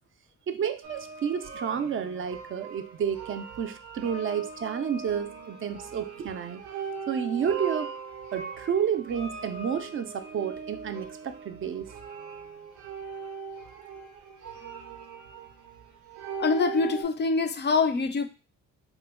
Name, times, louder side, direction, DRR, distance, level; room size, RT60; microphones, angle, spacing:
voice 1, 0.5-6.6 7.1-7.9 8.3-11.9, right 8 dB, 45° right, 10 dB, 0.4 m, -30 dB
sound 1, 0.8-17.0, right 5 dB, 90° right, 0.6 m, -40 dB
voice 2, 16.4-18.3, left 4 dB, 35° left, 9 dB, 0.4 m, -25 dB
2.9 x 2.1 x 3.5 m, 0.31 s
cardioid pair, 90°, 30 cm